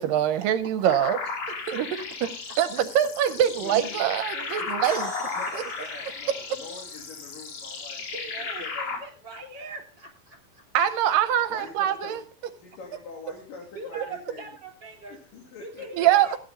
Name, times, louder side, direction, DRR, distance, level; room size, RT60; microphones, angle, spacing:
voice 1, 0.0-1.2 1.7-1.9 2.6-5.1 5.5-5.6 10.7-12.2 14.0-14.1 15.9-16.3, right 10 dB, 80° right, 11 dB, 2.3 m, -23 dB
sound 1, 0.9-9.0, left 4 dB, 50° left, 2.9 m, -34 dB
voice 2, 1.2-2.6 7.8-10.6 13.7-15.2 15.6-16.4, right 2 dB, 30° right, 2 dB, 3.7 m, -42 dB
voice 3, 3.6-4.0 5.4-8.0 8.6-9.0 11.5-12.2 12.6-14.0 14.3-14.4 15.3-16.1, left 3 dB, 70° left, -2 dB, 4.1 m, -43 dB
sound 2, 4.8-8.4, equal, ahead, 4.6 m, -47 dB
16.0 x 9.7 x 4.0 m, 0.39 s
omnidirectional pair, 4.1 m